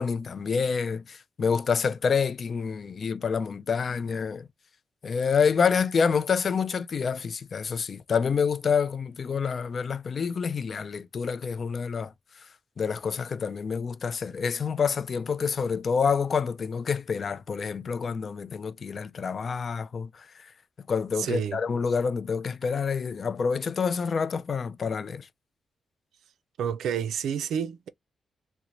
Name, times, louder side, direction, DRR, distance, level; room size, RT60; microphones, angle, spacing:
voice 1, 0.0-4.5 5.0-12.5 12.8-20.5 20.9-25.3, left 6 dB, 55° left, 0.4 m, -27 dB
voice 2, 21.2-21.6 26.6-27.9, right 8 dB, 85° right, 0.3 m, -29 dB
4.2 x 2.0 x 2.5 m
cardioid pair, 65°, 0 cm